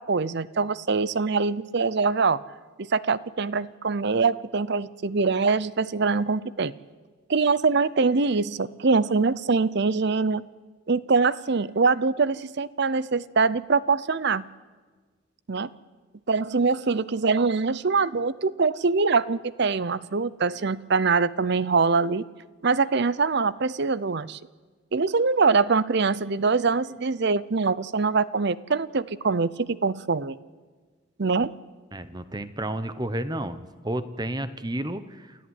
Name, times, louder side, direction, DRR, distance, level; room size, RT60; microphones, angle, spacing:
voice 1, 0.0-2.4 2.8-6.7 7.3-10.4 10.9-14.4 15.5-15.7 16.3-22.2 22.6-24.4 24.9-30.4 31.2-31.5, right 4 dB, 55° right, 18 dB, 0.6 m, -23 dB
voice 2, 31.9-33.6 33.8-35.5, right 1 dB, 20° right, 12 dB, 1.0 m, -31 dB
28.5 x 14.0 x 9.6 m, 1.4 s
head